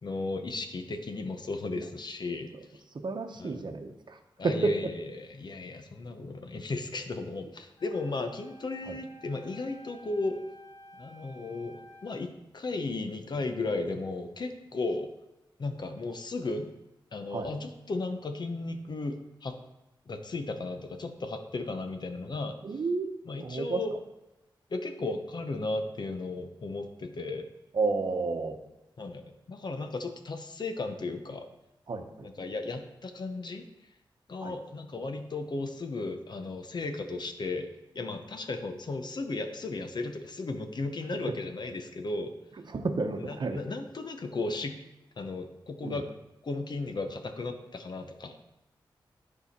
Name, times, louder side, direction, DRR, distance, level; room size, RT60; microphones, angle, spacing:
voice 1, 0.0-2.5 3.4-3.6 4.4-10.4 11.0-15.1 15.6-16.7 17.1-19.5 20.1-22.5 23.3-23.9 24.7-27.5 29.0-31.4 32.2-33.7 34.3-37.7 37.9-42.3 43.2-44.8 45.2-46.1 46.4-48.4, left 3 dB, 55° left, 6 dB, 0.9 m, -35 dB
voice 2, 2.9-4.2 4.4-4.9 8.9-9.0 17.3-17.5 22.6-23.1 23.4-23.8 27.7-28.6 31.9-32.3 34.4-34.6 41.3-41.4 42.6-43.6 45.8-46.0, right 3 dB, 60° right, 6 dB, 0.9 m, -31 dB
Wind instrument woodwind instrument, 7.8-12.2, equal, 40° left, 2.1 m, -52 dB
11.0 x 4.9 x 4.3 m, 0.96 s
wide cardioid pair, 90°, 9 cm